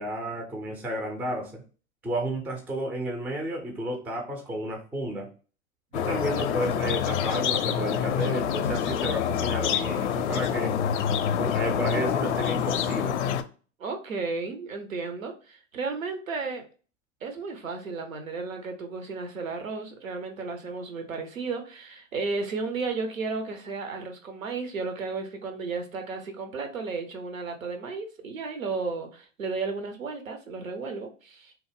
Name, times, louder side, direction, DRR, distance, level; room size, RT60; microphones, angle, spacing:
voice 1, 0.0-1.6 2.0-5.3 5.9-10.8 11.4-13.2, right 1 dB, 5° right, 0.3 m, -32 dB
sound 1, 5.9-13.4, left 8 dB, 60° left, 0.5 m, -27 dB
voice 2, 13.8-16.7 17.2-31.5, right 4 dB, 80° right, 0.8 m, -33 dB
3.0 x 2.0 x 3.3 m
figure-of-eight pair, 90°, 39 cm